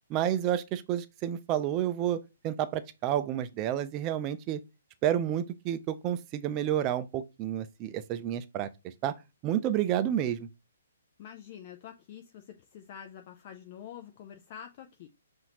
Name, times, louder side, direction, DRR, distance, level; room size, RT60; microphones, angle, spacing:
voice 1, 0.1-4.6 5.0-9.1 9.4-10.5, right 11 dB, 25° right, 0.4 m, -30 dB
voice 2, 11.2-15.1, left 9 dB, 40° left, 0.5 m, -47 dB
5.6 x 2.6 x 2.9 m
hypercardioid pair, 145°, 0 cm